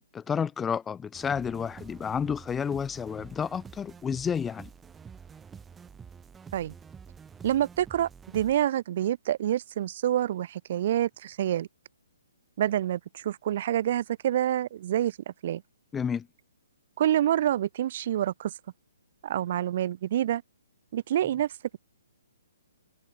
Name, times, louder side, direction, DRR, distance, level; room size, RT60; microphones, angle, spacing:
voice 1, 0.1-4.7 15.9-16.3, left 7 dB, 10° left, 0.8 m, -30 dB
sound 1, 1.1-8.5, right 6 dB, 10° right, 1.3 m, -48 dB
voice 2, 7.4-11.7 12.6-15.6 17.0-18.5 19.2-20.4 20.9-21.5, right 11 dB, 50° right, 0.9 m, -27 dB
figure-of-eight pair, 135°, 0 cm